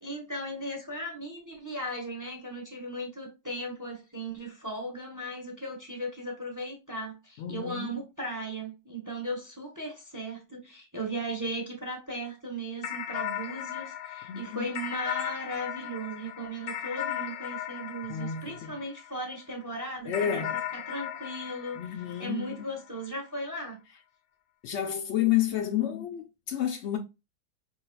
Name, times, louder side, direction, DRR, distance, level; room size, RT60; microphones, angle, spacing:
voice 1, 0.0-21.8 22.2-23.8, right 1 dB, 20° right, 0.6 m, -37 dB
voice 2, 7.4-7.9 14.3-14.5 18.1-18.7 20.1-20.6 21.7-22.6 24.6-27.0, left 10 dB, 85° left, 0.6 m, -30 dB
sound 1, 12.8-19.4 20.1-22.9, left 11 dB, 65° left, 0.9 m, -37 dB
4.5 x 3.1 x 2.2 m
omnidirectional pair, 1.8 m